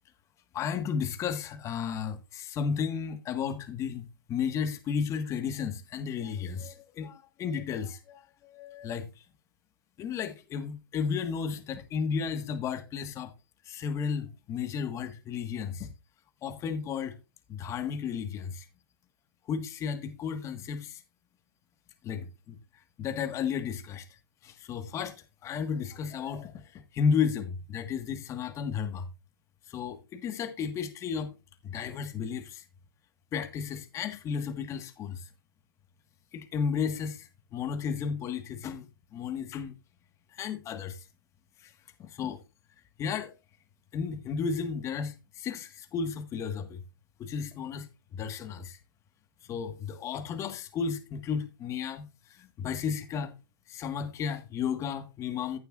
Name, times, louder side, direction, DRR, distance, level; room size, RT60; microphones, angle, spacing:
voice 1, 0.5-9.2 10.0-13.3 13.6-15.9 16.4-17.2 17.5-18.7 19.5-21.0 22.0-22.5 23.0-25.2 25.4-29.1 29.7-31.4 31.6-32.6 33.3-35.3 36.3-38.9 39.1-39.7 40.3-41.1 41.6-41.7 42.0-42.4 43.0-43.3 43.9-46.8 47.2-48.8 49.4-53.3 53.7-55.6, left 6 dB, 25° left, 1.5 m, -33 dB
15.5 x 6.7 x 2.4 m
hypercardioid pair, 130°, 12 cm